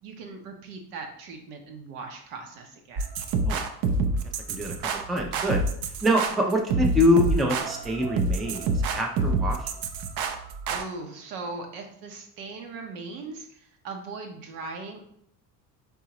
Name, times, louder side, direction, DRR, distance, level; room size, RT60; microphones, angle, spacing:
voice 1, 0.0-3.1 6.3-6.5 10.7-15.0, right 3 dB, 70° right, 3 dB, 1.0 m, -39 dB
sound 1, 3.0-10.8, right 3 dB, 45° right, 0.6 m, -27 dB
voice 2, 4.5-5.6 6.0-9.6, left 1 dB, ahead, 1 dB, 0.4 m, -25 dB
4.0 x 3.6 x 2.9 m, 0.68 s
hypercardioid pair, 65°, 49 cm